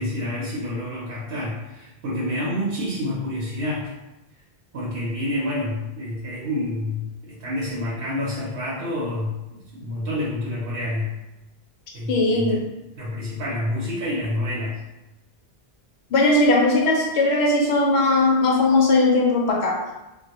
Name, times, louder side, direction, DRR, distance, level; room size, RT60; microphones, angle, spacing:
voice 1, 0.0-3.9 4.7-11.1 11.9-12.6 13.0-14.8, left 1 dB, 65° right, -6 dB, 0.8 m, -28 dB
voice 2, 12.1-12.6 16.1-19.8, left 2 dB, 80° left, -1 dB, 0.9 m, -19 dB
2.1 x 2.1 x 2.8 m, 0.99 s
omnidirectional pair, 1.1 m